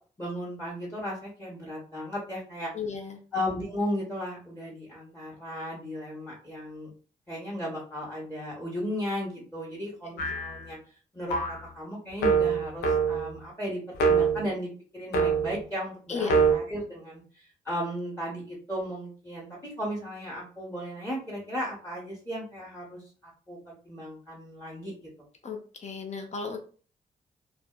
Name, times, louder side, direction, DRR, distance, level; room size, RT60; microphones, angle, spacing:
voice 1, 0.2-2.7 3.3-6.9 7.3-10.8 11.1-24.9, equal, 15° left, -3 dB, 1.2 m, -35 dB
voice 2, 2.7-3.2 10.1-10.4 16.1-16.4 25.4-26.6, left 5 dB, 45° left, 4 dB, 0.7 m, -35 dB
sound 1, 10.2-10.6 11.3-11.7 12.2-13.4 13.9-14.5 15.1-15.6 16.3-16.5, right 5 dB, 85° left, 0.6 m, -24 dB
2.5 x 2.2 x 2.4 m, 0.40 s
supercardioid pair, 55°, 17 cm